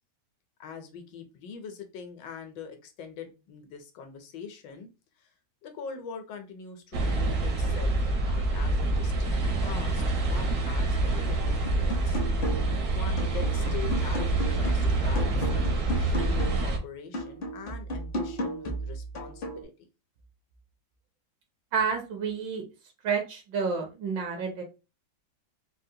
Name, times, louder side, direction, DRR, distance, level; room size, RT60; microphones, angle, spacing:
voice 1, 0.6-4.9 5.2-5.3 5.6-12.2 12.9-19.9, left 6 dB, 75° left, 6 dB, 1.3 m, -43 dB
sound 1, 6.9-16.8, right 2 dB, 60° right, 0.9 m, -26 dB
sound 2, 11.7-12.8 13.2-16.7 17.1-19.7, right 1 dB, 55° left, 0.5 m, -34 dB
voice 2, 21.7-22.6 23.0-24.6, right 6 dB, 75° right, 3 dB, 1.4 m, -29 dB
4.1 x 2.1 x 2.6 m, 0.29 s
omnidirectional pair, 2.0 m